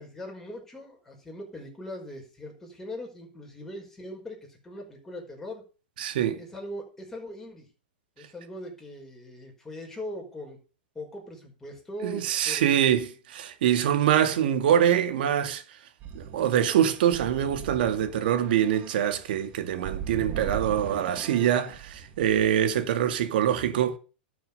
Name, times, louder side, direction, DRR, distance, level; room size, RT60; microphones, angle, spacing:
voice 1, 0.0-5.6 6.4-7.7 8.2-10.6 11.0-13.1, left 1 dB, 5° left, 5.4 m, -40 dB
voice 2, 6.0-6.4 12.0-15.6 16.1-24.0, right 10 dB, 60° right, 2.3 m, -24 dB
sound 1, 16.0-22.7, right 8 dB, 25° right, 1.7 m, -39 dB
12.0 x 7.4 x 6.8 m
hypercardioid pair, 150°, 6 cm